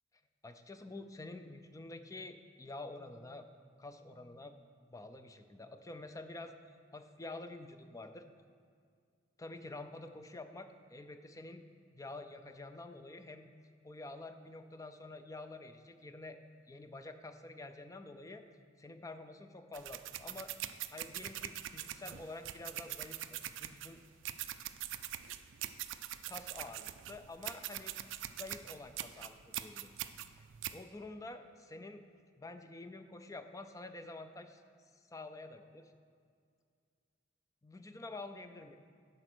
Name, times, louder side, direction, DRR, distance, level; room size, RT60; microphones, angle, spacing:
voice 1, 0.4-3.5 3.8-4.5 4.9-6.5 6.9-8.2 9.4-11.6 11.9-13.5 13.8-16.4 16.7-18.4 18.8-20.5 20.9-24.0 26.3-27.9 28.2-30.0 30.4-30.5 30.7-32.0 32.4-34.6 35.1-35.9 37.6-38.8, left 2 dB, 20° left, 8 dB, 0.4 m, -48 dB
sound 1, 19.7-30.8, right 12 dB, 85° right, 0.4 m, -43 dB
11.0 x 4.4 x 6.1 m, 2.2 s
head